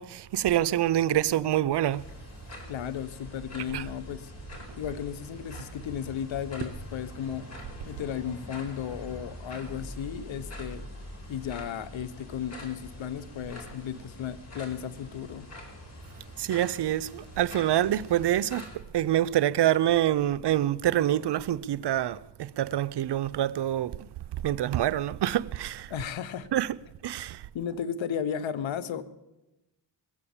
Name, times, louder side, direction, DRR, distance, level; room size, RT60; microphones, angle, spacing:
voice 1, 0.0-2.0 3.7-3.8 16.4-18.6 18.9-24.0 24.4-25.9 26.5-26.8 27.0-27.4, right 12 dB, 65° right, 0.6 m, -26 dB
sound 1, 1.9-18.7, left 1 dB, 35° left, 4.6 m, -44 dB
voice 2, 2.7-4.3 4.8-7.5 7.9-10.9 11.3-15.5 25.9-26.5 27.5-29.0, left 8 dB, 85° left, 1.0 m, -34 dB
21.0 x 8.3 x 7.1 m
cardioid pair, 70°, 45 cm